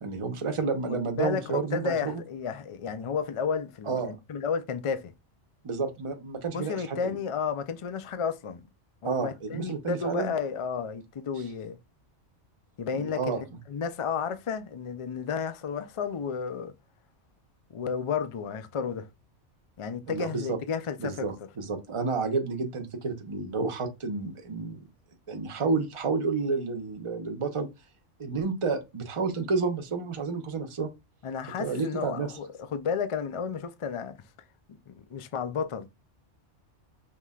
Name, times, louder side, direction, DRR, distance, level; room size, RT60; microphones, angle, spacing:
voice 1, 0.0-2.2 3.9-4.2 5.6-7.2 9.0-10.3 13.0-13.4 20.1-20.6 21.0-24.9 25.3-27.7 28.2-30.9 31.6-32.3, right 4 dB, 30° right, 0.7 m, -30 dB
voice 2, 0.9-1.4 1.7-5.1 6.5-8.6 9.0-11.8 12.8-13.4 13.7-16.7 17.7-19.1 19.8-21.3 31.2-34.1 34.7-35.9, left 6 dB, 60° left, 0.3 m, -32 dB
5.4 x 3.2 x 2.3 m
omnidirectional pair, 1.2 m